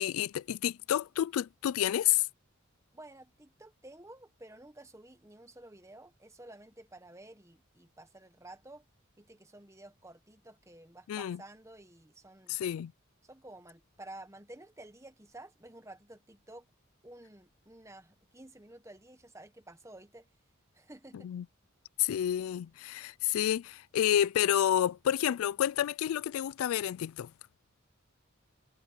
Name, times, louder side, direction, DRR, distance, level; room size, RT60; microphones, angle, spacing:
voice 1, 0.0-2.3 11.1-11.4 12.5-12.9 21.2-21.4 22.0-27.3, left 11 dB, 85° left, 0.3 m, -29 dB
voice 2, 2.9-8.8 9.2-12.6 13.2-16.7 17.0-20.3 20.7-21.3, right 1 dB, 15° right, 1.3 m, -52 dB
head